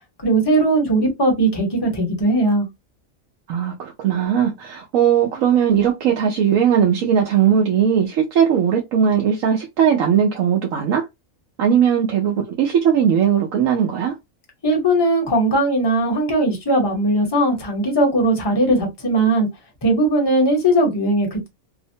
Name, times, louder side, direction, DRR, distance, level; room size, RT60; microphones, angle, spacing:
voice 1, 0.2-2.7 14.6-19.5 19.8-21.5, right 1 dB, 20° left, 0.8 m, -18 dB
voice 2, 3.5-11.1 11.6-14.1, right 8 dB, 80° right, 1.1 m, -18 dB
2.9 x 2.1 x 2.7 m
omnidirectional pair, 1.4 m